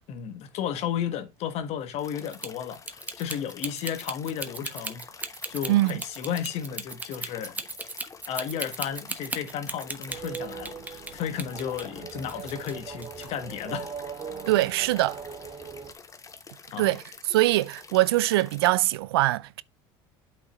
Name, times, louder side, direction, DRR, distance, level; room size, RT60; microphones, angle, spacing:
voice 1, 0.1-7.6 8.3-13.9 16.7-16.9, left 9 dB, 60° left, 1.4 m, -33 dB
sound 1, 2.0-18.8, left 5 dB, 25° left, 1.0 m, -48 dB
sound 2, 2.3-11.1 11.4-12.7 13.0-13.2, right 2 dB, 15° right, 1.1 m, -36 dB
voice 2, 5.7-6.0 14.5-15.2 16.8-17.0 17.3-19.6, right 17 dB, 85° right, 0.4 m, -23 dB
sound 3, 10.1-15.9, right 6 dB, 35° right, 2.1 m, -40 dB
8.3 x 5.5 x 3.1 m
hypercardioid pair, 80°, 12 cm